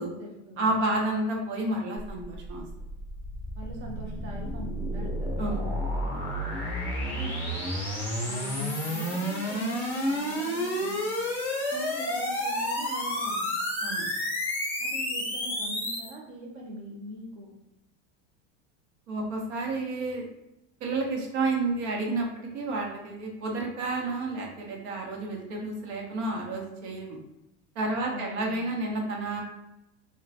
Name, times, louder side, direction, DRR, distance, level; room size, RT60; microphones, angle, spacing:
voice 1, 0.0-0.7 3.6-5.4 7.1-7.7 8.2-11.0 11.7-13.6 14.8-17.5 28.1-28.7, equal, 35° right, -2 dB, 0.6 m, -42 dB
voice 2, 0.6-2.6 5.4-5.7 13.8-14.1 19.1-20.3 20.8-27.2 27.7-29.4, right 2 dB, 80° right, 0 dB, 0.9 m, -30 dB
sound 1, 2.0-16.1, equal, 5° left, 0.6 m, -31 dB
3.0 x 2.2 x 2.7 m, 0.89 s
supercardioid pair, 155°, 35 cm